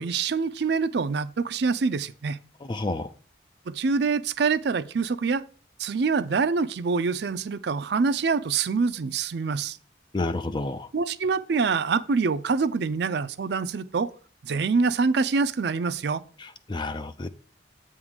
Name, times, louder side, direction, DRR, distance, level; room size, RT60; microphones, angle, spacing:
voice 1, 0.0-2.4 3.7-5.4 5.8-9.8 10.9-14.1 14.4-16.2, right 4 dB, 65° right, 0.4 m, -25 dB
voice 2, 2.7-3.1 10.1-10.9 16.4-17.3, left 2 dB, 25° left, 0.4 m, -30 dB
7.9 x 3.7 x 6.3 m
head